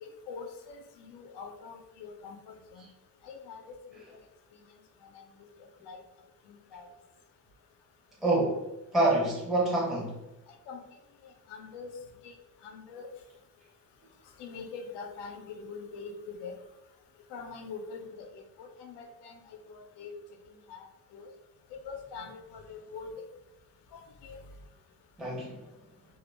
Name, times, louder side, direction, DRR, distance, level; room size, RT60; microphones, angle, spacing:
voice 1, 0.0-2.9 3.2-4.0 5.0-5.2 5.8-6.0 6.5-6.9 10.7-10.8 11.2-11.9 12.2-12.3 12.6-13.1 14.4-16.6 17.3-20.1 20.7-20.9 21.1-21.3 21.8-23.3 23.9-24.4, left 5 dB, 75° left, 4 dB, 0.6 m, -44 dB
voice 2, 8.2-8.7 8.9-10.2 25.2-25.6, right 2 dB, ahead, -3 dB, 0.6 m, -27 dB
2.2 x 2.0 x 3.1 m, 0.96 s
supercardioid pair, 65°, 42 cm